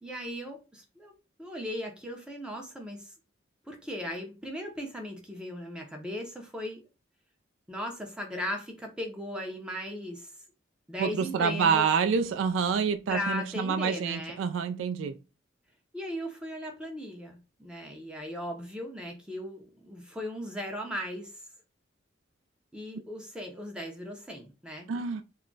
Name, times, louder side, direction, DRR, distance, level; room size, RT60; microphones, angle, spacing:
voice 1, 0.0-1.1 1.4-3.1 3.7-6.8 7.7-10.3 10.9-11.9 13.1-14.4 15.9-21.4 22.7-24.9, equal, 5° right, 0.5 m, -37 dB
voice 2, 11.0-15.2 24.9-25.2, right 6 dB, 85° right, 0.3 m, -27 dB
2.3 x 2.0 x 3.7 m
head